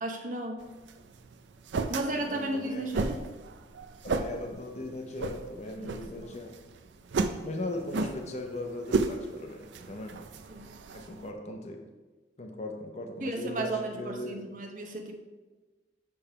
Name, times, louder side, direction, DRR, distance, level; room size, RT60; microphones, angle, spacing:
voice 1, 0.0-0.7 1.9-3.1 5.8-6.4 10.5-10.7 13.2-15.1, right 2 dB, 45° right, 3 dB, 0.7 m, -34 dB
sound 1, 0.6-11.3, right 3 dB, 75° right, 0.4 m, -35 dB
voice 2, 2.1-2.8 4.0-6.5 7.4-10.1 10.9-11.8 12.4-14.4, left 1 dB, 40° left, 3 dB, 0.7 m, -38 dB
6.9 x 3.4 x 5.6 m, 1.2 s
head